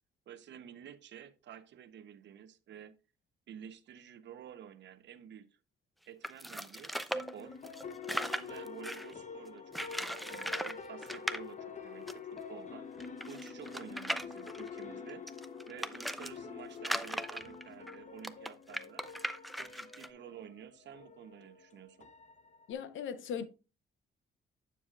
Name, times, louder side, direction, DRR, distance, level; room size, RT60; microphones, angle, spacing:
voice 1, 0.3-2.9 3.5-5.6 6.1-7.6 8.1-9.8 10.2-12.9 13.3-15.3 15.7-19.0 19.5-22.1, right 9 dB, 65° right, 0.8 m, -51 dB
sound 1, 6.2-9.1 9.7-10.8 11.0-11.4 12.1-12.2 12.4-12.5 13.0-16.3 16.8-20.1, equal, ahead, 0.5 m, -38 dB
sound 2, 7.1-22.7, left 5 dB, 35° left, 0.9 m, -47 dB
voice 2, 22.7-23.4, left 7 dB, 75° left, 0.8 m, -38 dB
9.5 x 7.0 x 2.4 m
cardioid pair, 90°, 20 cm